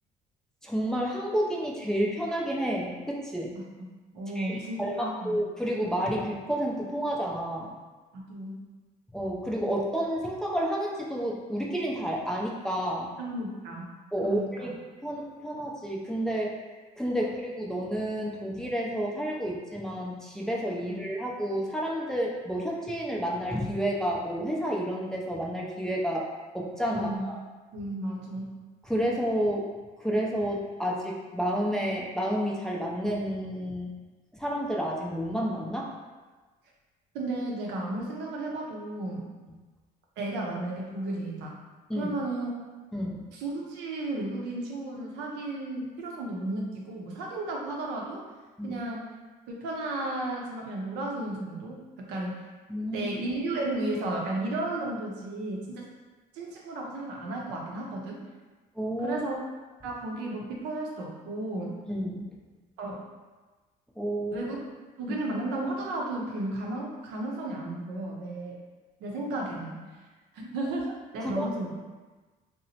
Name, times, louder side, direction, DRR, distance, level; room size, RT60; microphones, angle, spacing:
voice 1, 0.6-3.5 4.4-7.7 9.1-13.1 14.1-14.8 15.0-16.5 17.0-26.3 26.5-27.4 28.8-29.7 30.0-33.9 34.3-35.9 41.9-42.1 42.9-43.3 48.6-48.8 52.7-53.1 58.8-59.2 61.9-62.3 64.0-64.5 65.1-65.2 71.2-71.5, equal, 5° left, -3 dB, 0.3 m, -30 dB
voice 2, 4.1-5.4 8.1-8.6 13.2-13.9 14.2-14.7 20.8-21.0 26.9-27.2 27.7-28.5 37.1-39.2 40.2-41.6 41.9-42.5 43.3-48.2 48.6-49.0 49.5-52.4 52.9-55.8 56.3-58.2 59.0-59.4 59.8-61.8 62.8-63.0 64.3-64.6 65.0-68.6 69.0-69.8 70.3-71.7, right 2 dB, 90° right, -2 dB, 0.6 m, -33 dB
2.8 x 2.0 x 2.7 m, 1.3 s
cardioid pair, 110°, 17 cm